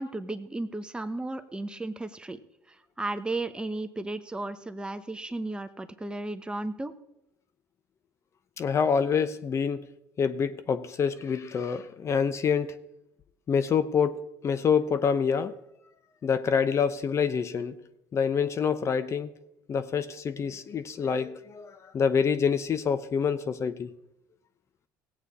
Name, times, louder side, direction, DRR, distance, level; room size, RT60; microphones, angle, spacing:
voice 1, 0.0-2.4 2.7-6.9, right 2 dB, 15° right, 0.9 m, -34 dB
voice 2, 8.6-9.8 10.2-12.7 13.5-14.2 14.4-15.5 16.2-17.7 18.1-19.3 19.7-23.9, left 6 dB, 40° left, 0.7 m, -26 dB
17.0 x 8.4 x 4.2 m
supercardioid pair, 75°, 7 cm